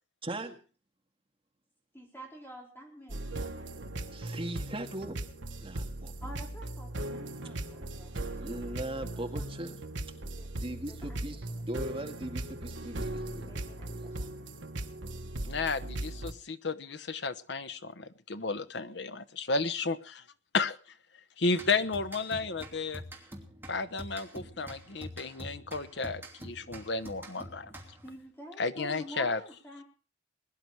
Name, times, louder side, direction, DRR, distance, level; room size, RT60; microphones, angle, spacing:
voice 1, 0.2-0.6 4.1-5.2 5.6-6.1 8.4-9.8 10.6-13.5 13.9-14.1, right 1 dB, 30° right, 3 dB, 2.0 m, -39 dB
voice 2, 1.9-3.6 6.2-8.8 9.0-9.8 10.2-10.5 10.9-11.6 13.5-14.5 28.0-29.8, equal, 10° left, 0 dB, 4.2 m, -49 dB
sound 1, 3.1-16.3, right 1 dB, 85° right, 1.4 m, -38 dB
voice 3, 15.5-20.2 20.5-20.8 21.4-23.0 23.7-27.7 28.6-29.4, left 4 dB, 65° left, 11 dB, 1.1 m, -32 dB
sound 2, 21.5-28.2, equal, 10° right, 2.9 m, -46 dB
21.5 x 11.0 x 4.7 m, 0.38 s
head